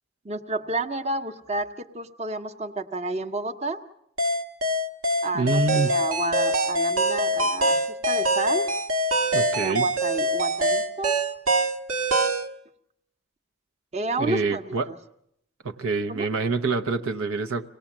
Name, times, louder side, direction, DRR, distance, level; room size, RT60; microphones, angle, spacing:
voice 1, 0.2-3.8 5.2-8.7 9.6-11.2 13.9-15.0 16.1-16.3, right 2 dB, 30° right, 5 dB, 1.0 m, -30 dB
sound 1, 4.2-12.5, right 1 dB, 85° right, 1.5 m, -24 dB
voice 2, 5.3-5.9 9.3-9.9 14.2-14.9 15.6-17.7, right 3 dB, 70° right, 5 dB, 0.8 m, -26 dB
25.0 x 18.5 x 7.2 m, 0.75 s
head